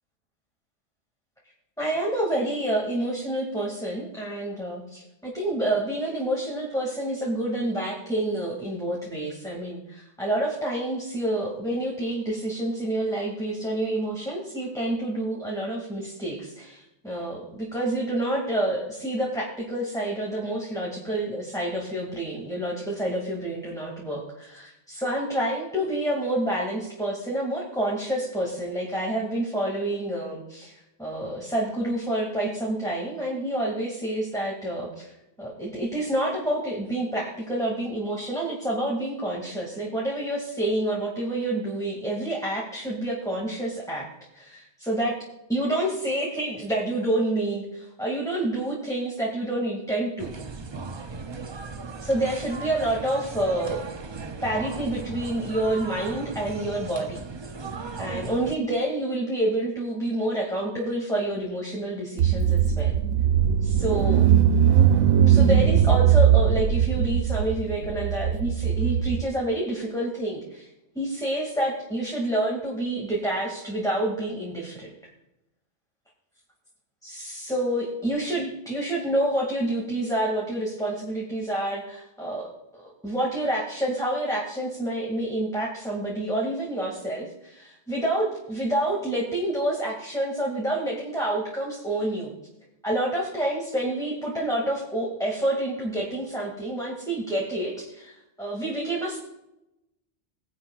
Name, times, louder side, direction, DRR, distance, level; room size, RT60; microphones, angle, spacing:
voice 1, 1.8-44.1 44.3-45.2 45.5-50.3 52.0-53.9 54.4-57.2 58.0-63.0 63.6-64.4 65.3-70.7 71.0-74.9 77.0-92.3 92.8-99.2, right 1 dB, 5° left, -3 dB, 2.1 m, -28 dB
sound 1, 50.2-58.6, right 4 dB, 35° right, 0.4 m, -37 dB
Car / Engine, 62.2-69.2, right 9 dB, 85° right, 1.0 m, -20 dB
19.0 x 10.5 x 2.4 m, 0.90 s
omnidirectional pair, 1.2 m